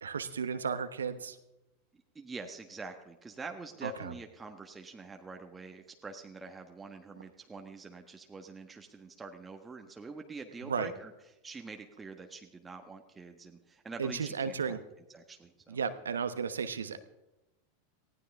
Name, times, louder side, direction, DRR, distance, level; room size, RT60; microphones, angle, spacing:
voice 1, 0.0-1.4 3.8-4.1 10.6-10.9 14.0-14.8 15.7-17.0, right 6 dB, 80° right, 12 dB, 1.0 m, -34 dB
voice 2, 2.1-11.1 11.4-14.8 15.1-15.8, right 4 dB, 15° right, 4 dB, 1.4 m, -46 dB
19.0 x 15.5 x 3.6 m, 0.96 s
hypercardioid pair, 90°, 0 cm